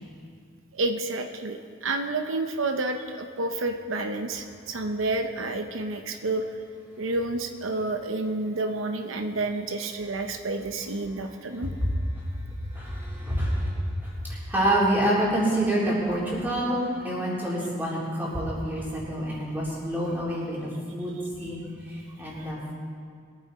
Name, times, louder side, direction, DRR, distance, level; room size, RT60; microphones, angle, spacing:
voice 1, 0.7-6.4 7.0-11.7 21.4-21.5, right 2 dB, 90° right, 6 dB, 0.8 m, -29 dB
voice 2, 12.7-22.7, right 1 dB, 10° right, -7 dB, 3.7 m, -27 dB
22.0 x 9.1 x 4.2 m, 2.2 s
head